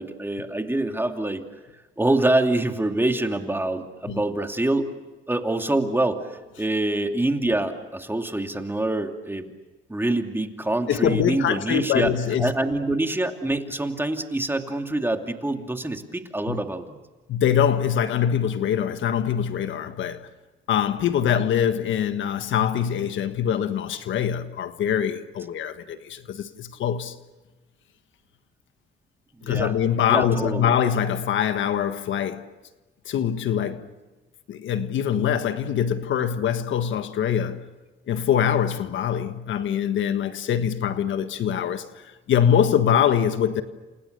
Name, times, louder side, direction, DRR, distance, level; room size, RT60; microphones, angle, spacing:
voice 1, 0.0-1.5 2.0-4.9 5.3-6.3 6.6-9.5 9.9-16.9 29.4-29.7 30.1-30.7, right 2 dB, 10° right, 2.7 m, -25 dB
voice 2, 10.9-12.5 16.5-16.6 17.3-20.3 20.7-27.2 29.4-32.5 33.0-33.9 34.5-37.7 38.1-43.6, left 9 dB, 75° left, 1.5 m, -23 dB
29.5 x 28.0 x 6.8 m
cardioid pair, 90°, 20 cm